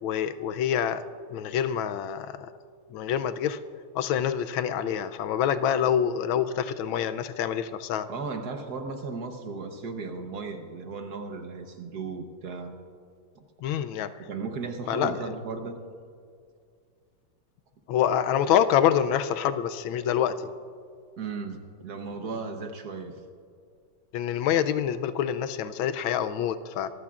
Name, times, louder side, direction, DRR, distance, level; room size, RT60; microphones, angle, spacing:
voice 1, 0.0-1.0 1.3-2.5 2.9-3.6 3.9-8.1 13.6-14.1 14.9-15.1 17.9-20.5 24.1-26.9, left 9 dB, 80° left, 12 dB, 1.4 m, -26 dB
voice 2, 8.1-12.8 13.3-13.4 14.3-15.8 21.2-23.2, right 4 dB, 60° right, 5 dB, 1.4 m, -36 dB
25.5 x 14.5 x 2.4 m, 2.2 s
omnidirectional pair, 2.2 m